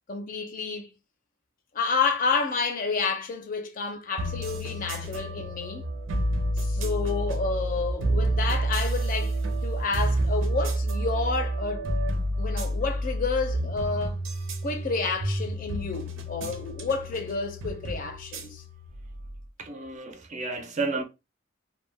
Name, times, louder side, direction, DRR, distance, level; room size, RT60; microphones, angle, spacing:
voice 1, 0.1-0.9 1.7-5.8 6.6-11.9 12.4-14.2 14.6-18.6, left 4 dB, 45° left, 0.5 m, -30 dB
sound 1, 4.2-19.4, right 1 dB, 85° right, 0.5 m, -29 dB
voice 2, 19.6-21.0, right 3 dB, 40° right, 0.4 m, -31 dB
2.2 x 2.1 x 3.1 m
head